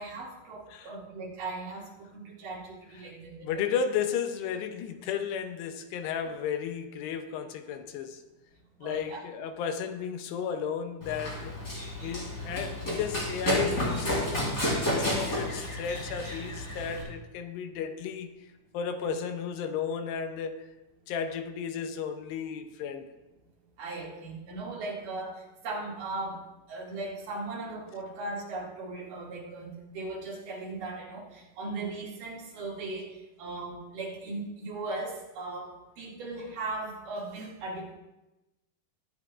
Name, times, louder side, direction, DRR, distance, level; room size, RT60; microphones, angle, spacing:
voice 1, 0.0-3.6 8.8-9.2 19.0-19.1 23.8-26.4 26.7-38.0, right 2 dB, 55° right, -5 dB, 3.7 m, -38 dB
voice 2, 3.4-8.2 8.8-11.5 12.0-18.3 18.7-20.6 21.1-23.1, left 7 dB, 80° left, 7 dB, 2.8 m, -34 dB
Run, 11.0-17.0, left 1 dB, 20° left, 3.8 m, -31 dB
21.0 x 9.4 x 2.5 m, 1.0 s
omnidirectional pair, 4.9 m